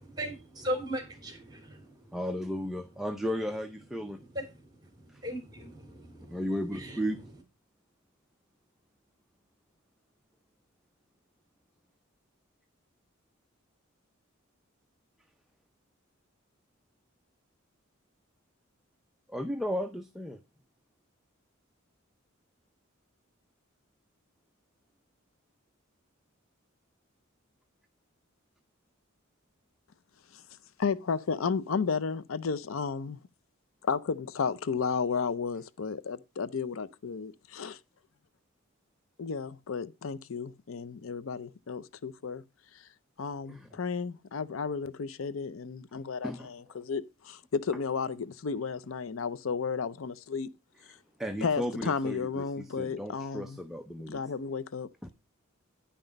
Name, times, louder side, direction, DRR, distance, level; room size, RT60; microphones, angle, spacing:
voice 1, 0.0-2.2 4.1-6.4 6.7-7.1, equal, 20° right, 3.6 m, -38 dB
voice 2, 2.1-4.2 6.3-7.2 19.3-20.4 43.5-43.7 46.2-46.5 51.2-54.2 55.0-55.1, equal, ahead, 0.6 m, -34 dB
voice 3, 30.8-33.2 33.8-37.8 39.2-42.4 42.7-42.9 43.2-50.5 50.9-51.0 51.4-53.6 54.1-55.1, left 5 dB, 80° left, 0.6 m, -33 dB
10.0 x 5.9 x 5.2 m
head